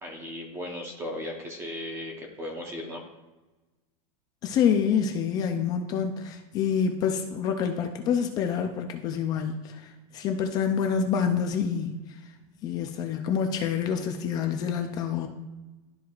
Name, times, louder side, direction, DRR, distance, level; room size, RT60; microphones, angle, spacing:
voice 1, 0.0-3.0, left 1 dB, 15° right, 1 dB, 0.8 m, -36 dB
voice 2, 4.4-12.2 12.6-15.3, left 7 dB, 20° left, 5 dB, 0.3 m, -27 dB
12.0 x 4.6 x 2.4 m, 1.2 s
supercardioid pair, 175°, 18 cm